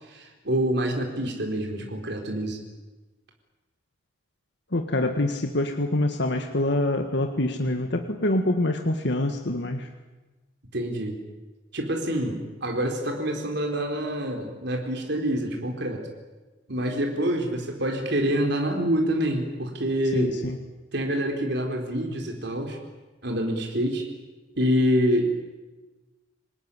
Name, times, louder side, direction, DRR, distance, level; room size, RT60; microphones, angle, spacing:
voice 1, 0.1-2.6 10.7-11.2 11.7-16.1 16.7-20.4 20.9-22.8 23.2-24.1 24.6-25.3, equal, 65° right, 2 dB, 4.0 m, -26 dB
voice 2, 4.7-9.9 20.1-20.6, left 1 dB, 65° left, 5 dB, 1.7 m, -25 dB
26.5 x 20.0 x 9.9 m, 1.2 s
head